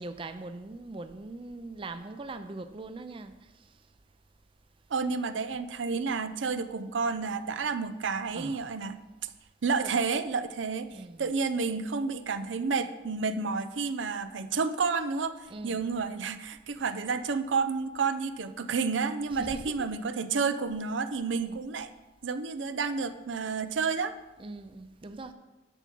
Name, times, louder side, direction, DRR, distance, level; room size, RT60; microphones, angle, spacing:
voice 1, 0.0-3.3 8.3-8.7 9.8-9.9 10.9-11.3 15.5-15.9 19.3-19.7 21.4-21.6 24.4-25.3, right 2 dB, 30° right, 9 dB, 0.4 m, -41 dB
voice 2, 4.9-9.3 9.6-21.9 22.2-24.2, right 4 dB, 85° right, 11 dB, 0.6 m, -30 dB
10.5 x 7.1 x 4.5 m, 1.1 s
head